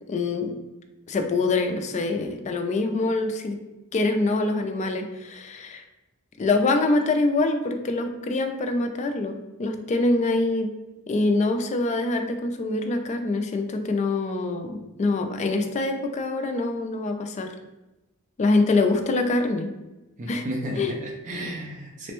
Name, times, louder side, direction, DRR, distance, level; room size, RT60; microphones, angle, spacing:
voice 1, 0.1-0.5 1.1-3.6 3.9-5.8 6.4-10.7 11.1-17.5 18.4-19.7 20.3-20.5 20.8-20.9, left 2 dB, 30° left, 5 dB, 0.3 m, -24 dB
voice 2, 20.2-22.1, equal, 35° right, -1 dB, 0.4 m, -33 dB
3.3 x 2.1 x 2.9 m, 1.0 s
head